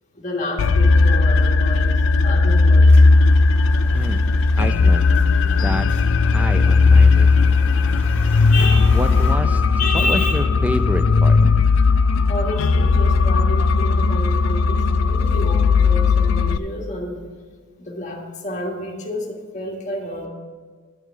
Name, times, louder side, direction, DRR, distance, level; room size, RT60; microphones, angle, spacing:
voice 1, 0.1-1.9 2.2-3.0 8.5-9.0 9.8-10.5 11.4-11.5 11.9-17.3 17.8-20.3, left 2 dB, 35° left, -1 dB, 1.7 m, -29 dB
sound 1, 0.6-16.6, left 4 dB, 65° left, 0.4 m, -16 dB
sound 2, 2.9-9.3, equal, 10° left, 2.0 m, -34 dB
voice 2, 4.6-5.1 5.4-5.9 6.2-7.3 8.9-9.6 9.9-11.4, equal, 5° right, 8 dB, 0.5 m, -28 dB
11.0 x 4.9 x 8.0 m, 1.5 s
head